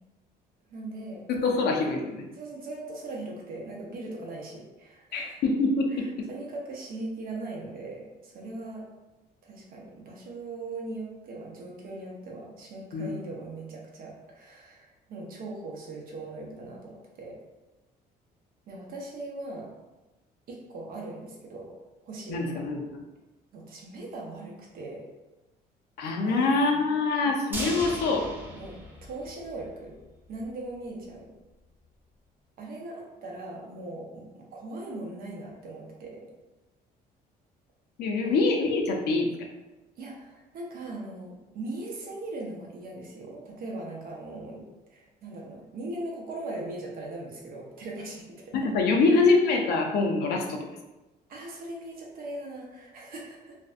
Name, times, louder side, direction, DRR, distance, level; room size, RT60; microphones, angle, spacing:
voice 1, 0.7-1.5 2.3-5.4 5.9-8.8 9.4-17.4 18.7-19.7 20.5-21.8 22.0-22.6 23.5-25.1 26.3-26.9 28.5-30.0 30.3-31.3 32.6-36.2 38.2-38.5 40.0-44.6 44.9-48.6 49.1-49.3 51.3-53.5, right 2 dB, 60° right, -1 dB, 0.7 m, -40 dB
voice 2, 1.3-2.2 5.1-6.1 12.9-13.1 22.3-22.8 26.0-28.3 38.0-39.3 48.5-50.6, left 3 dB, 75° left, 2 dB, 0.5 m, -24 dB
sound 1, 27.5-29.7 30.0-30.1 30.4-30.5, right 1 dB, 10° right, 0.7 m, -37 dB
2.5 x 2.1 x 2.4 m, 1.1 s
cardioid pair, 110°, 17 cm